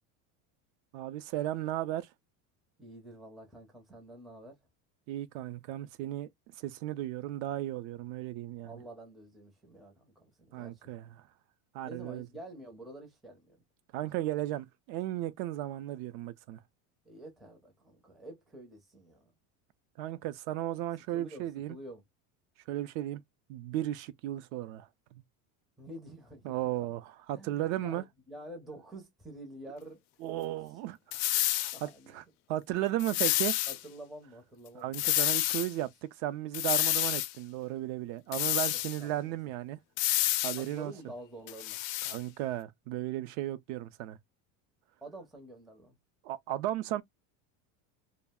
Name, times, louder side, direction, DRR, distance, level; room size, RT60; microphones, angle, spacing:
voice 1, 0.9-2.1 5.1-6.3 6.6-8.7 10.5-11.1 11.7-12.3 13.9-16.6 20.0-21.7 22.7-23.2 23.5-25.2 26.5-28.0 30.2-31.2 31.5-32.2 32.5-33.6 34.8-35.9 36.2-39.8 40.4-40.9 42.0-44.2 46.2-47.0, right 14 dB, 60° right, 0.5 m, -35 dB
voice 2, 2.8-4.6 8.6-10.9 11.8-13.6 17.0-19.3 21.1-22.0 25.8-26.9 27.3-30.0 31.7-32.2 33.7-35.0 38.7-39.4 40.6-41.8 45.0-46.0, right 1 dB, ahead, 0.5 m, -48 dB
sound 1, 31.1-31.8 33.0-33.8 34.9-35.7 36.5-37.3 38.3-39.0 40.0-40.6 41.5-42.2, left 15 dB, 85° left, 0.5 m, -29 dB
2.3 x 2.0 x 3.4 m
cardioid pair, 165°, 39 cm